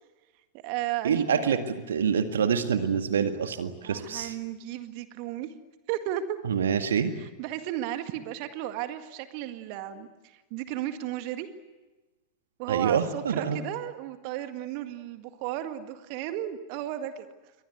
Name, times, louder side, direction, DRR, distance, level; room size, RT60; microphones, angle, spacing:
voice 1, 0.5-1.6 3.8-5.5 5.9-6.4 7.2-11.5 12.6-17.3, right 12 dB, 45° right, 9 dB, 1.9 m, -34 dB
voice 2, 1.0-1.6 1.9-4.3 6.4-7.1 12.7-13.6, right 7 dB, 65° right, 8 dB, 1.9 m, -26 dB
29.5 x 24.0 x 8.1 m, 1.2 s
figure-of-eight pair, 90°, 0 cm